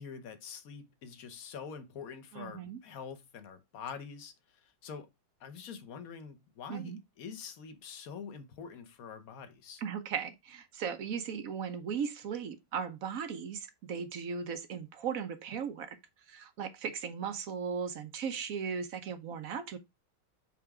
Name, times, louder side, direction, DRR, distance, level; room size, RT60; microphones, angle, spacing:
voice 1, 0.0-5.1 5.4-9.8, left 6 dB, 50° left, 1.3 m, -45 dB
voice 2, 2.3-2.8 6.7-7.0 9.8-19.8, right 6 dB, 65° right, 0.9 m, -37 dB
7.1 x 3.4 x 4.8 m
omnidirectional pair, 2.2 m